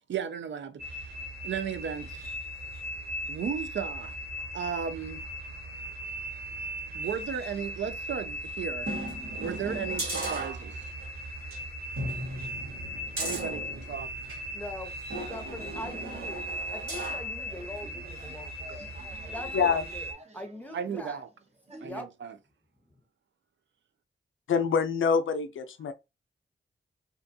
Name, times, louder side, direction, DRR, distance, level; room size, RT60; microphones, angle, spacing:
voice 1, 0.1-1.1 1.4-2.3 3.3-4.2 4.5-5.2 6.9-8.9 9.4-10.9 13.2-14.1 20.7-21.3 21.8-22.3, right 7 dB, 65° right, 0.4 m, -35 dB
sound 1, 0.8-20.1, equal, 50° right, 1.2 m, -38 dB
sound 2, 8.8-11.0 11.4-11.6 11.9-14.5 15.1-17.3 17.8-17.9, right 1 dB, 90° right, 1.3 m, -36 dB
voice 2, 14.5-14.9 15.3-16.4 16.7-18.9 19.3-20.1 20.3-21.2 21.8-22.1, left 1 dB, 5° left, 0.8 m, -42 dB
sound 3, 16.8-21.9, right 1 dB, 35° right, 0.7 m, -50 dB
voice 3, 24.5-25.9, left 6 dB, 75° left, 0.4 m, -25 dB
2.5 x 2.3 x 2.6 m
cardioid pair, 40°, 21 cm